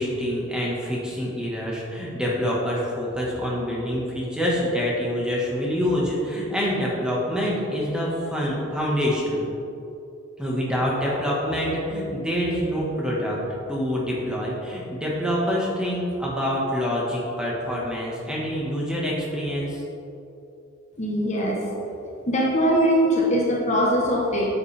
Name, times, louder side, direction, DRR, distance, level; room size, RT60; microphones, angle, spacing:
voice 1, 0.0-9.4 10.4-13.4 13.7-19.8, equal, 5° right, -5 dB, 1.5 m, -26 dB
voice 2, 21.0-21.6 22.3-24.5, equal, 35° left, -3 dB, 1.1 m, -21 dB
9.4 x 8.4 x 3.4 m, 2.8 s
head